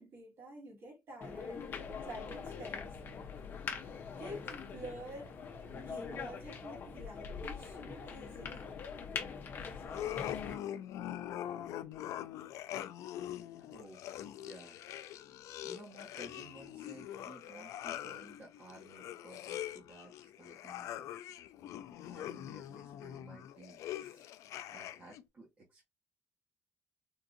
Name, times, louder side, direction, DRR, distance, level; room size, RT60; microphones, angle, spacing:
voice 1, 0.0-3.0 4.2-5.3 5.7-8.7 9.4-9.6 24.0-24.2, right 1 dB, 50° right, 1.8 m, -49 dB
sound 1, 1.2-10.5, left 6 dB, 40° left, 0.7 m, -43 dB
sound 2, 9.8-25.2, left 12 dB, 85° left, 0.3 m, -43 dB
voice 2, 13.7-14.0 14.4-14.8 15.6-21.1 22.0-23.8 24.7-25.9, right 2 dB, 30° right, 1.2 m, -55 dB
3.7 x 2.6 x 2.5 m
cardioid pair, 165°, 5 cm